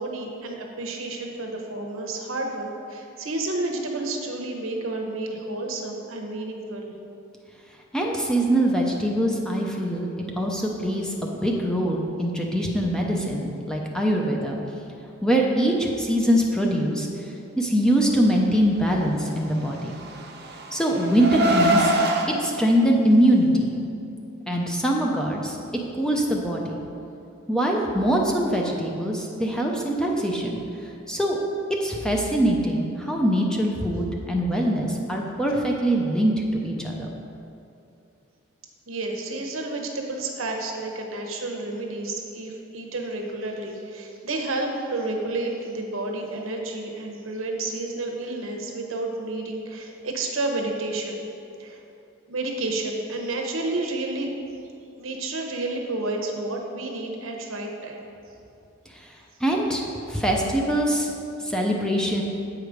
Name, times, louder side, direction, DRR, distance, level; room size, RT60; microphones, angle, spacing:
voice 1, 0.0-6.9 38.9-51.3 51.6-51.8 52.3-54.3 55.0-58.0, right 2 dB, 80° right, 1 dB, 1.0 m, -30 dB
voice 2, 7.9-10.1 10.4-14.6 15.2-17.1 17.6-19.9 20.7-21.9 22.4-23.7 24.5-25.6 26.0-26.8 27.5-30.6 31.1-31.4 31.8-36.3 36.6-37.1 59.4-61.1 61.4-62.2, right 1 dB, 5° left, -1 dB, 0.6 m, -23 dB
Car, 19.8-22.3, right 1 dB, 50° right, 0.7 m, -23 dB
8.0 x 4.9 x 5.0 m, 2.7 s
head